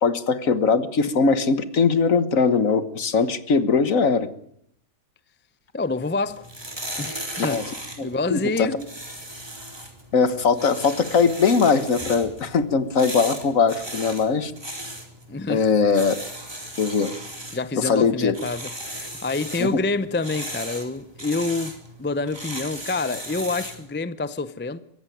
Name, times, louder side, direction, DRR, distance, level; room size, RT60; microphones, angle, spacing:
voice 1, 0.0-4.3 7.4-7.6 8.0-8.8 10.1-14.5 15.5-16.2 16.8-17.1 17.8-18.3 19.6-19.7, left 5 dB, 55° left, 1.7 m, -21 dB
voice 2, 5.7-6.4 7.0-7.6 8.0-8.8 15.3-15.7 17.5-24.8, left 3 dB, 15° left, 0.3 m, -27 dB
sound 1, 6.2-23.9, right 1 dB, 15° right, 3.9 m, -37 dB
23.0 x 15.5 x 9.4 m
omnidirectional pair, 1.7 m